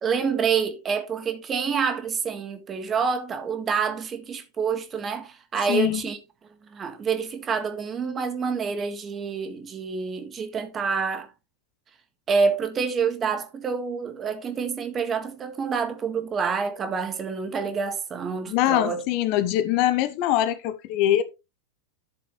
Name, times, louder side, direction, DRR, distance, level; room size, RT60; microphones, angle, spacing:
voice 1, 0.0-6.2 6.7-11.3 12.3-19.0 19.4-19.5, right 6 dB, 25° right, 1.8 m, -27 dB
voice 2, 5.7-6.0 18.5-21.2, left 13 dB, 45° left, 1.0 m, -23 dB
12.0 x 6.8 x 3.2 m
figure-of-eight pair, 90°, 0 cm